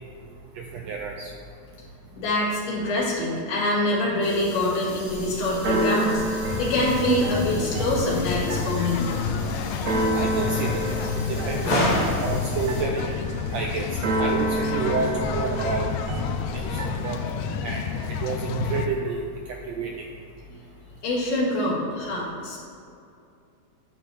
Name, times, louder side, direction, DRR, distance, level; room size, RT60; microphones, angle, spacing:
voice 1, 0.6-1.3 10.1-10.9 11.3-11.9 12.2-13.1 13.5-13.9 14.2-15.9 16.7-16.8 17.0-17.2 17.6-19.2 19.7-19.9, right 4 dB, 90° right, 1 dB, 1.5 m, -29 dB
voice 2, 2.2-9.0 11.6-12.2 21.0-22.6, left 1 dB, 55° left, -5 dB, 2.9 m, -25 dB
sound 1, 4.2-12.8, left 1 dB, 25° left, 1.4 m, -43 dB
Keyboard (musical), 5.0-17.1, right 2 dB, 65° right, 2.2 m, -30 dB
sound 2, 6.5-18.9, left 7 dB, 85° left, 1.5 m, -30 dB
8.8 x 4.2 x 6.9 m, 2.5 s
omnidirectional pair, 3.6 m